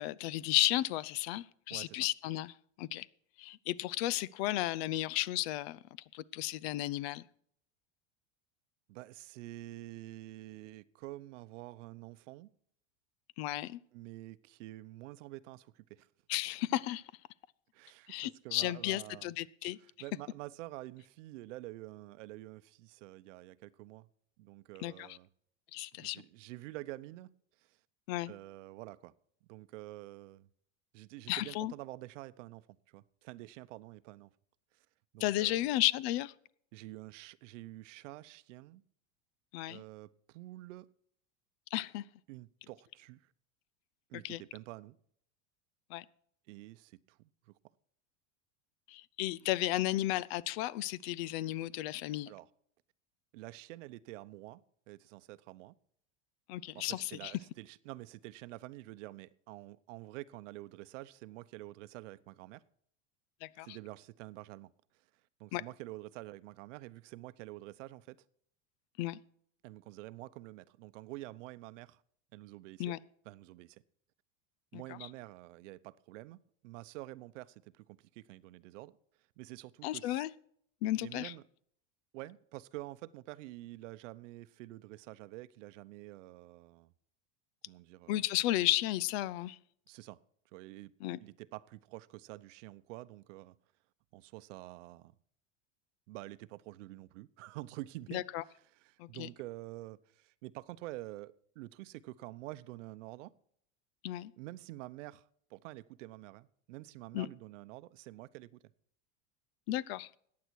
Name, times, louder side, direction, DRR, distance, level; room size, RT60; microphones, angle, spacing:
voice 1, 0.0-3.1 3.4-5.8 6.1-7.2 13.4-13.8 16.3-17.0 18.1-19.8 24.8-25.2 25.7-26.2 28.1-28.3 31.3-31.7 35.2-36.3 39.5-39.8 41.7-42.0 44.2-44.4 45.9-46.0 48.9-52.3 56.5-57.3 63.4-63.8 65.5-65.6 69.0-69.2 72.8-73.0 74.7-75.0 79.8-80.3 80.8-81.3 88.1-89.6 91.0-91.2 98.1-98.4 99.0-99.3 104.0-104.3 107.1-107.3 109.7-110.1, left 15 dB, 55° left, 0.6 m, -34 dB
voice 2, 1.7-2.1 8.9-12.5 13.9-16.1 17.7-19.3 19.8-24.1 24.4-25.3 26.0-27.3 27.6-27.8 28.3-29.1 29.5-30.5 30.9-34.3 35.1-35.6 36.7-38.8 39.7-40.9 42.3-43.3 44.1-45.0 46.5-47.5 52.3-52.5 53.3-55.7 56.7-62.6 63.6-64.7 65.4-68.2 69.6-72.0 72.3-72.9 73.2-73.8 74.7-79.0 79.4-80.2 81.0-81.4 82.1-86.9 87.7-88.2 89.9-90.2 90.5-90.9 91.2-93.5 94.1-95.1 96.1-98.2 98.7-103.3 104.4-108.6, right 18 dB, 75° right, 0.8 m, -48 dB
14.5 x 9.5 x 4.6 m
supercardioid pair, 150°, 37 cm